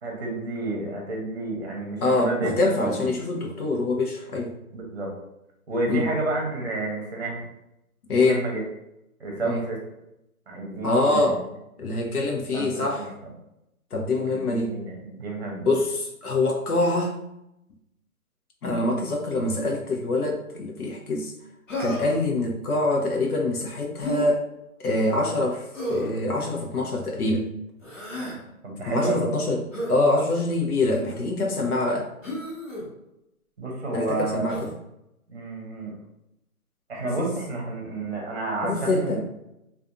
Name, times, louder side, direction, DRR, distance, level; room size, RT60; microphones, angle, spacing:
voice 1, 0.0-3.1 4.7-5.1 5.7-7.4 8.1-8.6 9.2-9.8 10.5-11.4 12.5-13.3 14.3-15.7 28.6-29.3 33.6-34.6 35.3-35.9 36.9-39.2, right 2 dB, 45° right, -1 dB, 0.8 m, -30 dB
voice 2, 2.0-4.5 5.9-6.1 8.1-8.4 9.4-9.6 10.8-11.4 11.8-13.1 13.9-14.8 15.6-17.2 18.6-21.3 21.8-24.4 24.8-27.5 28.9-29.6 29.9-32.1 33.9-34.6 38.6-39.2, left 2 dB, 85° left, 1 dB, 0.8 m, -24 dB
Human voice, 21.7-22.2 24.0-24.3 25.7-26.2 27.8-28.4 29.7-29.9 30.9-31.2 32.2-32.8 34.5-34.7, equal, 60° left, 1.2 m, -32 dB
2.5 x 2.5 x 2.4 m, 0.86 s
hypercardioid pair, 180°, 44 cm